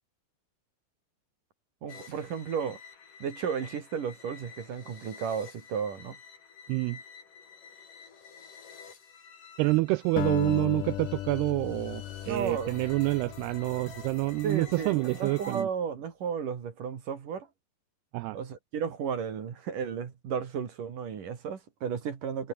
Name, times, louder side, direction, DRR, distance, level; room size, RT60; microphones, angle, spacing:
voice 1, 1.8-2.8 3.2-6.2 12.3-12.8 14.4-17.5 18.3-22.5, right 7 dB, 55° right, 3.8 m, -34 dB
sound 1, 1.9-15.6, left 6 dB, 50° left, 5.4 m, -49 dB
voice 2, 9.6-15.7 18.1-18.4, right 22 dB, 85° right, 2.4 m, -27 dB
Acoustic guitar, 10.2-14.6, left 15 dB, 80° left, 1.9 m, -37 dB
omnidirectional pair, 4.9 m